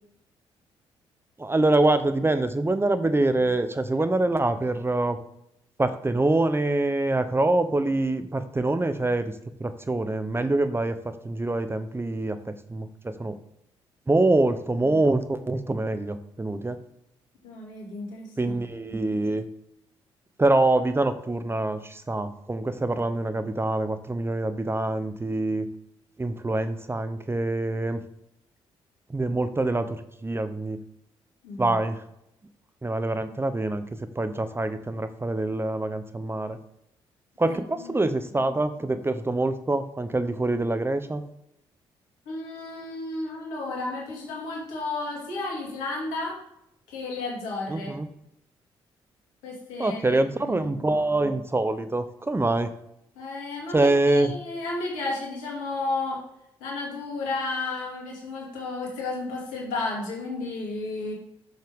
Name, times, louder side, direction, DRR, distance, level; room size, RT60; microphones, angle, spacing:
voice 1, 1.4-5.2 5.8-9.3 9.6-13.3 14.1-16.8 18.4-19.5 20.4-25.7 26.2-28.0 29.1-30.8 31.6-32.0 32.8-33.8 34.2-36.6 37.4-41.2 47.7-48.1 49.8-52.7 53.7-54.3, right 2 dB, 20° right, 11 dB, 0.7 m, -25 dB
voice 2, 17.4-18.5 18.9-19.0 31.4-31.8 37.4-38.1 42.3-46.4 46.9-47.9 49.4-50.7 53.2-56.2 56.6-61.1, left 3 dB, 80° left, -2 dB, 2.4 m, -33 dB
6.6 x 6.3 x 3.5 m, 0.79 s
hypercardioid pair, 45°, 13 cm